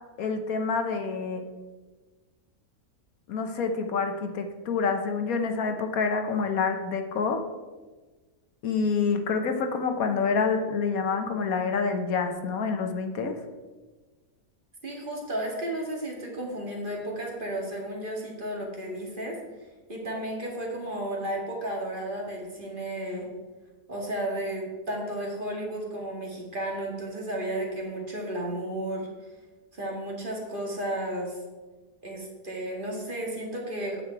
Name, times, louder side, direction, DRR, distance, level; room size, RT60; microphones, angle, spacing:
voice 1, 0.2-1.4 3.3-7.4 8.6-13.3, left 5 dB, 70° left, 6 dB, 1.3 m, -27 dB
voice 2, 14.8-19.4 19.9-23.3 23.9-29.1 29.7-31.4 32.0-34.0, right 1 dB, 35° right, -1 dB, 2.0 m, -33 dB
8.9 x 7.9 x 4.5 m, 1.3 s
omnidirectional pair, 1.6 m